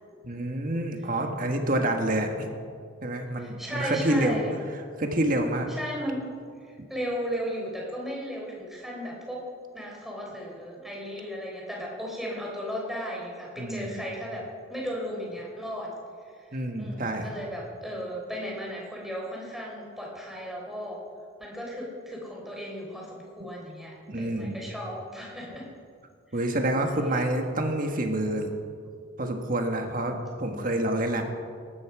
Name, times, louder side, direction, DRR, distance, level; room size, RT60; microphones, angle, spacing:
voice 1, 0.2-2.6 3.0-4.4 5.0-5.7 13.6-14.0 16.5-17.3 24.1-24.6 26.3-28.5 29.2-31.2, right 1 dB, 45° right, 4 dB, 1.6 m, -27 dB
voice 2, 3.4-4.6 5.7-6.3 6.6-9.5 9.7-15.9 16.2-21.0 21.4-25.7 26.3-26.4, equal, ahead, -2 dB, 3.7 m, -35 dB
18.0 x 13.5 x 4.9 m, 2.2 s
head